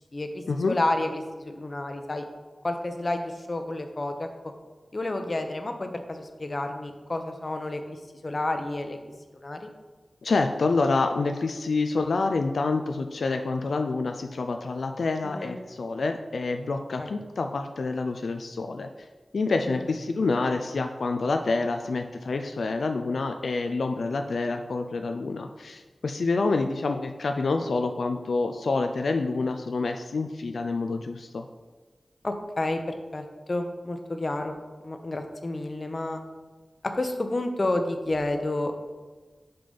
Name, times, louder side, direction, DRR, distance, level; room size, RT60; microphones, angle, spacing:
voice 1, 0.1-2.2 2.6-4.3 4.9-8.0 8.2-9.0 9.4-9.7 15.2-15.6 17.0-17.1 19.6-19.8 26.5-26.7 32.2-34.6 34.8-36.2 36.9-38.9, left 2 dB, 40° left, 6 dB, 0.7 m, -30 dB
voice 2, 10.2-18.9 19.3-31.5, left 3 dB, 90° left, 6 dB, 0.4 m, -27 dB
5.8 x 5.1 x 5.3 m, 1.3 s
wide cardioid pair, 90°, 0 cm